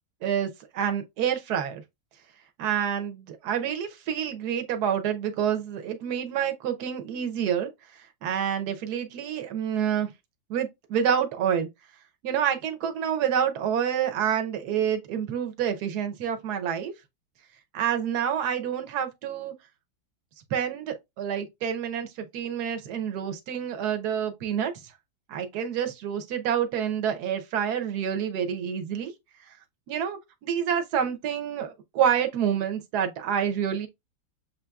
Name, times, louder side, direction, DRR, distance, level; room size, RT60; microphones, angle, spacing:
voice 1, 0.2-1.8 2.6-7.7 8.2-10.1 10.5-11.7 12.2-16.9 17.7-19.5 20.5-24.7 25.3-29.1 29.9-33.9, right 8 dB, 65° right, 1.2 m, -28 dB
7.2 x 2.7 x 2.3 m
omnidirectional pair, 2.0 m